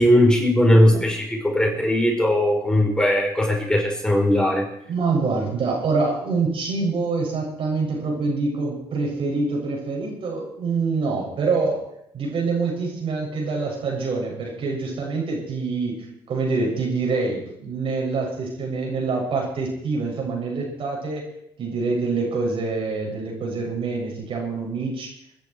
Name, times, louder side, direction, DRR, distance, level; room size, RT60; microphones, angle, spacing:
voice 1, 0.0-4.7, left 1 dB, 5° left, 0 dB, 4.8 m, -19 dB
voice 2, 4.9-11.8 12.1-21.2 21.6-25.1, right 4 dB, 55° right, -1 dB, 7.5 m, -25 dB
22.5 x 10.5 x 4.8 m, 0.74 s
supercardioid pair, 65°, 11 cm